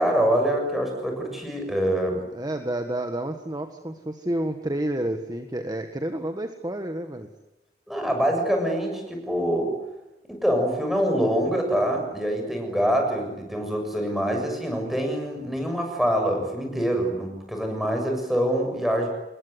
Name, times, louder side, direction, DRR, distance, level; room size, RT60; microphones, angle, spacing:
voice 1, 0.0-2.2 7.9-9.8 10.3-19.1, equal, ahead, 2 dB, 7.0 m, -25 dB
voice 2, 2.1-7.3, right 1 dB, 20° right, 6 dB, 1.6 m, -30 dB
27.5 x 21.5 x 9.6 m, 0.98 s
head